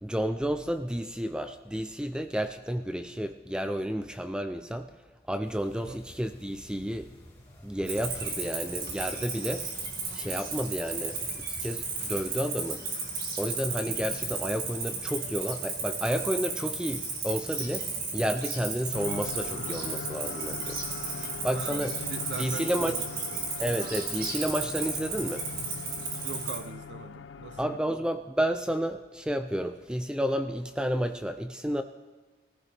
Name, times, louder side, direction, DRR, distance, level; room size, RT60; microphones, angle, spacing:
voice 1, 0.0-4.9 5.3-7.1 7.6-9.7 10.1-12.8 13.4-20.8 21.1-22.0 22.4-22.9 23.6-25.5 27.6-31.8, equal, 5° right, 8 dB, 0.4 m, -31 dB
sound 1, 5.4-12.4, equal, 15° left, 2.0 m, -51 dB
Cricket, 7.9-26.6, right 4 dB, 55° right, 2.1 m, -34 dB
sound 2, 18.9-27.8, left 6 dB, 85° left, 0.4 m, -41 dB
voice 2, 21.5-23.0 23.3-23.5 26.2-27.8, right 4 dB, 80° right, 12 dB, 0.5 m, -41 dB
19.5 x 15.0 x 3.4 m, 1.3 s
head